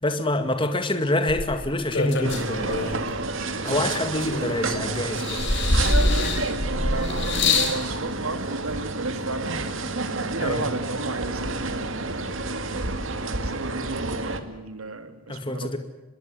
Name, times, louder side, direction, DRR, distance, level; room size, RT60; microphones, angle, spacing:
voice 1, 0.0-3.0 3.6-5.4 10.4-10.7 15.3-15.8, left 1 dB, 25° left, 7 dB, 2.1 m, -26 dB
sound 1, 1.3-3.1 3.7-4.7 5.2-7.8 8.7-8.8, left 2 dB, 55° left, 4.3 m, -25 dB
sound 2, 2.2-14.4, right 3 dB, 65° right, 2.3 m, -29 dB
voice 2, 6.4-9.5 10.2-12.1 13.3-15.8, right 2 dB, 85° right, 8 dB, 2.9 m, -33 dB
25.5 x 21.5 x 8.3 m, 1.1 s
head